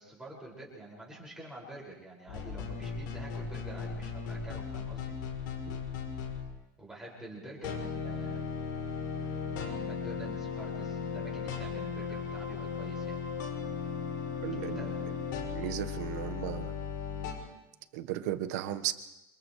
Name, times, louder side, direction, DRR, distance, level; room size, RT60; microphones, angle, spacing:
voice 1, 0.0-5.5 6.8-8.4 9.6-13.2 14.6-14.9, right 1 dB, 5° right, -4 dB, 6.1 m, -47 dB
sound 1, 2.3-6.5 7.6-17.3, left 6 dB, 80° left, 6.1 m, -36 dB
voice 2, 14.4-14.8 15.5-16.7 17.9-18.9, right 12 dB, 60° right, 10 dB, 1.4 m, -35 dB
28.5 x 28.5 x 3.3 m, 0.96 s
supercardioid pair, 180°, 10 cm